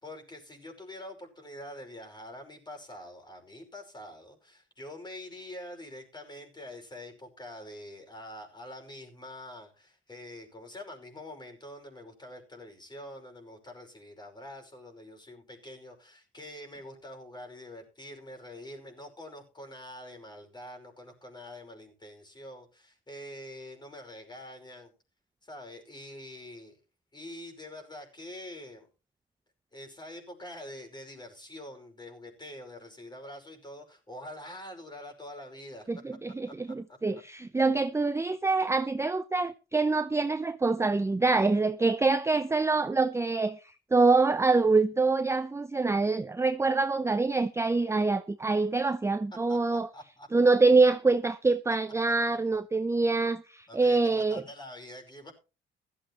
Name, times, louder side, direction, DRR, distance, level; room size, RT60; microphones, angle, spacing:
voice 1, 0.0-24.9 25.4-26.8 27.1-28.9 29.7-35.9 36.5-37.2 49.5-50.3 52.3-52.4 53.7-55.3, left 1 dB, 20° left, 5.3 m, -45 dB
voice 2, 35.9-43.6 43.9-49.9 50.3-54.4, right 3 dB, 15° right, 0.6 m, -25 dB
16.0 x 13.5 x 3.0 m
cardioid pair, 90°, 20 cm